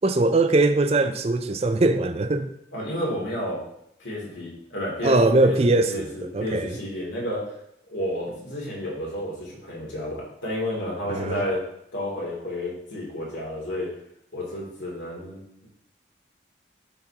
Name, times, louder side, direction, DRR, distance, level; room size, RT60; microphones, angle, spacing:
voice 1, 0.0-2.5 5.0-6.8 11.1-11.4, right 2 dB, 35° right, 9 dB, 0.5 m, -21 dB
voice 2, 2.7-3.6 4.0-5.2 5.4-7.5 7.9-11.6 11.9-13.9 14.3-15.7, left 1 dB, 85° left, -4 dB, 2.8 m, -31 dB
12.0 x 4.0 x 2.9 m, 0.76 s
head